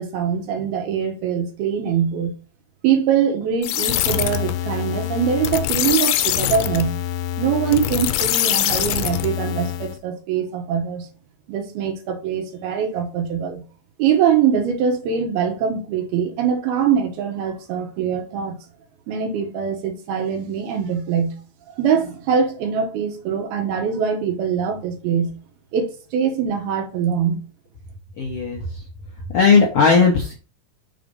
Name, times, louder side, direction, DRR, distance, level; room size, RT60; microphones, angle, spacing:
voice 1, 0.0-2.3 2.8-6.9 7.4-11.1 11.5-13.6 14.0-18.6 19.1-21.4 21.7-25.3 25.7-27.4, right 7 dB, 80° right, 3.2 m, -23 dB
sound 1, 3.6-10.0, left 12 dB, 90° left, 2.5 m, -23 dB
voice 2, 28.2-28.8 29.3-30.3, left 5 dB, 70° left, 1.5 m, -16 dB
6.7 x 4.0 x 5.2 m
omnidirectional pair, 4.3 m